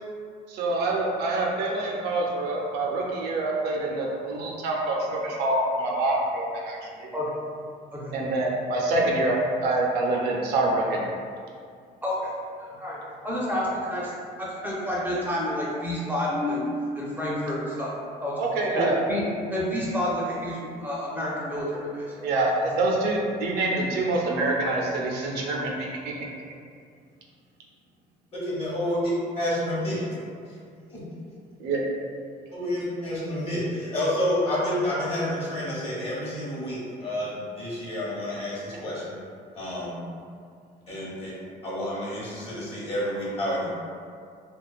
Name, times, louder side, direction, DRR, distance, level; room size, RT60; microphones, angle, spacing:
voice 1, 0.5-7.1 8.1-11.1 18.4-18.9 22.2-26.1 31.6-31.8, right 2 dB, 75° right, -2 dB, 0.5 m, -26 dB
voice 2, 12.0-12.3 12.6-13.0 13.2-14.1 14.4-16.7 17.0-17.9 18.2-18.5 18.8-19.2 19.5-22.0 22.4-22.5, left 1 dB, 10° right, -6 dB, 0.4 m, -29 dB
voice 3, 28.3-30.0 30.9-31.0 32.5-39.1 39.5-40.0 40.9-41.3 41.6-43.7, left 1 dB, 35° left, -6 dB, 0.8 m, -29 dB
2.4 x 2.2 x 2.3 m, 2.2 s
cardioid pair, 110°, 17 cm